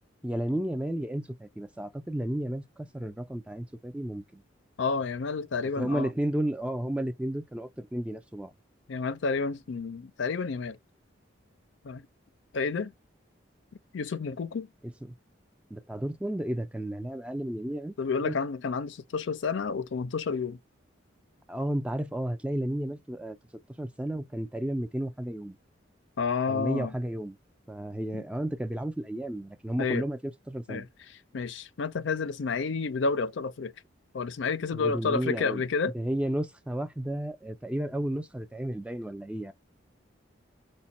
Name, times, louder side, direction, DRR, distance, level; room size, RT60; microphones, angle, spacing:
voice 1, 0.2-4.4 5.8-8.5 14.8-15.1 15.7-17.9 18.2-18.3 21.5-23.4 23.8-25.6 26.5-27.4 27.7-30.9 34.7-35.6 35.9-39.5, right 1 dB, 5° right, 0.3 m, -32 dB
voice 2, 4.8-6.1 8.9-10.8 11.8-12.1 12.5-12.9 13.9-14.7 18.0-20.6 26.2-26.9 28.1-28.2 29.8-30.0 30.7-30.8 31.3-33.7 34.1-35.9, left 4 dB, 70° left, 0.4 m, -30 dB
5.0 x 2.1 x 4.1 m
head